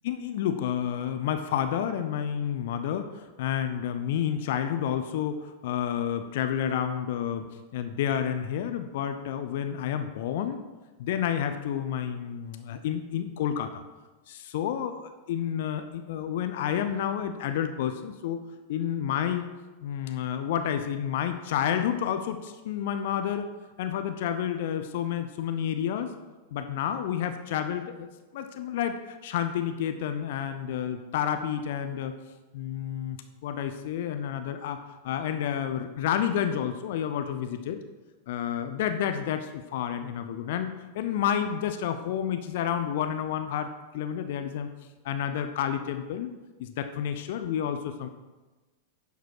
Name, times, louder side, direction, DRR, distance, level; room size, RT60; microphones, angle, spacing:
voice 1, 0.0-10.6 11.0-13.8 14.3-18.4 18.7-19.5 19.8-23.5 23.8-26.1 26.5-28.1 28.3-32.1 32.5-33.2 33.4-34.8 35.0-37.8 38.3-44.7 45.0-46.3 46.6-48.1, left 9 dB, 55° left, 9 dB, 0.7 m, -30 dB
10.5 x 7.0 x 4.8 m, 1.2 s
figure-of-eight pair, 90°, 0 cm